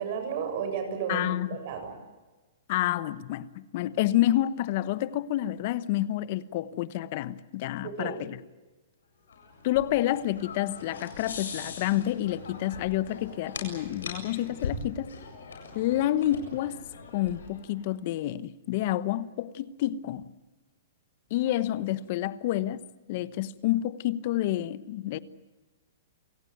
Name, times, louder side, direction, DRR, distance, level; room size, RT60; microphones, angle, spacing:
voice 1, 0.0-1.9 7.8-8.2, right 6 dB, 50° right, 7.4 m, -33 dB
voice 2, 1.1-1.6 2.7-8.4 9.6-15.1 15.7-16.8 17.1-20.2 21.3-25.2, left 14 dB, 50° left, 1.1 m, -29 dB
sound 1, 9.3-17.8, left 4 dB, 85° left, 7.8 m, -41 dB
28.5 x 17.5 x 9.4 m
hypercardioid pair, 135°, 0 cm